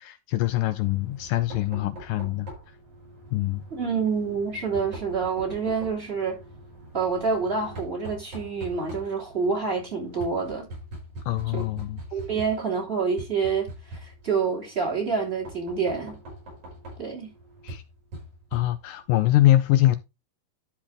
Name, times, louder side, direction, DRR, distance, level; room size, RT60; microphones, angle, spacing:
voice 1, 0.0-2.5 3.3-3.6 11.3-12.0 17.6-17.8 18.5-20.0, left 14 dB, 80° left, 2.0 m, -23 dB
Knock, 0.7-19.1, right 1 dB, 55° right, 6.5 m, -43 dB
voice 2, 3.7-6.4 6.9-10.7 11.5-11.6 12.1-16.2 17.0-17.3, right 5 dB, 15° right, 2.8 m, -27 dB
12.5 x 4.4 x 3.6 m
omnidirectional pair, 4.2 m